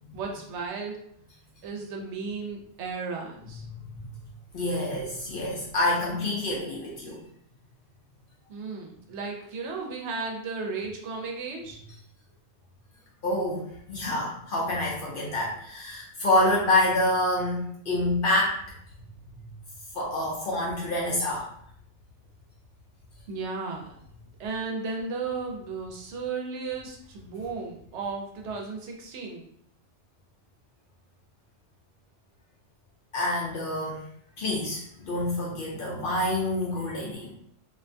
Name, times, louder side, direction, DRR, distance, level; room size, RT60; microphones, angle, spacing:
voice 1, 0.1-1.0 1.6-3.6 8.5-11.8 23.3-24.0 24.4-29.4, right 4 dB, 75° right, 1 dB, 0.9 m, -34 dB
voice 2, 4.5-7.2 13.2-13.6 13.9-18.6 19.9-21.5 33.1-34.0 34.4-37.3, left 1 dB, 60° left, -3 dB, 0.6 m, -27 dB
2.4 x 2.2 x 2.5 m, 0.69 s
omnidirectional pair, 1.2 m